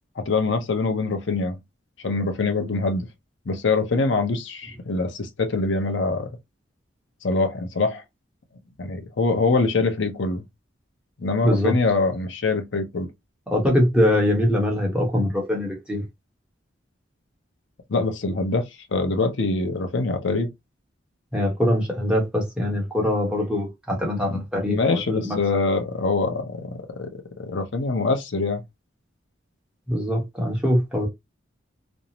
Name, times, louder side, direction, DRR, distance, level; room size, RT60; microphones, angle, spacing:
voice 1, 0.2-1.6 2.0-3.1 3.5-6.3 7.2-8.0 8.8-10.4 11.2-13.1 17.9-20.5 24.3-24.4 24.7-27.1 27.4-28.6, left 3 dB, 75° left, 0.6 m, -24 dB
voice 2, 13.5-16.0 21.3-25.4 29.9-31.1, left 1 dB, 5° right, 0.8 m, -23 dB
2.5 x 2.0 x 2.8 m
head